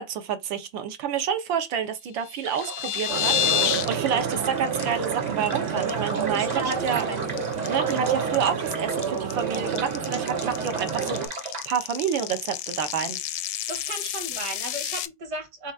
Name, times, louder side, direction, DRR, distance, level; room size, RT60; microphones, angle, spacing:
voice 1, 0.0-7.0 7.7-11.2 11.7-13.2, right 7 dB, 65° right, 1.5 m, -28 dB
sound 1, 2.2-3.9 4.2-4.5 4.8-4.9 5.3-5.5 5.9-6.4 6.7-15.1, left 11 dB, 75° left, 1.0 m, -30 dB
sound 2, 2.4-11.7, right 3 dB, 35° right, 0.7 m, -37 dB
sound 3, 3.1-11.3, right 6 dB, 85° right, 2.3 m, -29 dB
voice 2, 6.3-7.3 13.7-15.7, right 2 dB, 50° right, 2.0 m, -35 dB
5.0 x 4.2 x 2.4 m
omnidirectional pair, 2.4 m